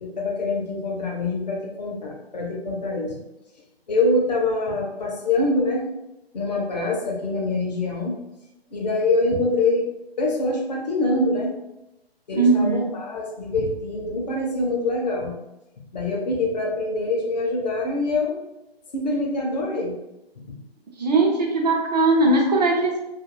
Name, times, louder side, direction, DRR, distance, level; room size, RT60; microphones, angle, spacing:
voice 1, 0.0-3.2 3.9-5.9 6.3-8.2 8.7-9.9 10.2-11.5 12.3-15.3 15.9-18.4 18.9-20.0, left 2 dB, 40° left, -1 dB, 0.6 m, -24 dB
voice 2, 12.3-12.9 21.0-23.0, right 2 dB, 40° right, 0 dB, 0.5 m, -19 dB
2.3 x 2.2 x 3.0 m, 0.91 s
figure-of-eight pair, 150°, 31 cm